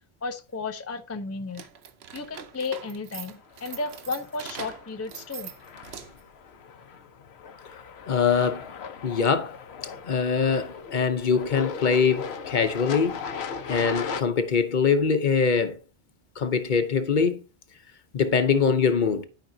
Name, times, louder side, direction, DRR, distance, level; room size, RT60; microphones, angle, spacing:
voice 1, 0.2-1.6 2.1-5.5, left 4 dB, 20° left, 0.4 m, -33 dB
sound 1, 1.5-6.3, right 8 dB, 85° right, 1.0 m, -42 dB
sound 2, 3.5-14.2, left 6 dB, 90° left, 1.0 m, -38 dB
voice 2, 8.1-8.7 9.0-9.6 10.0-13.2 13.7-15.8 16.4-17.4 18.1-19.3, left 6 dB, 50° left, 0.8 m, -23 dB
12.0 x 5.1 x 2.7 m
omnidirectional pair, 1.1 m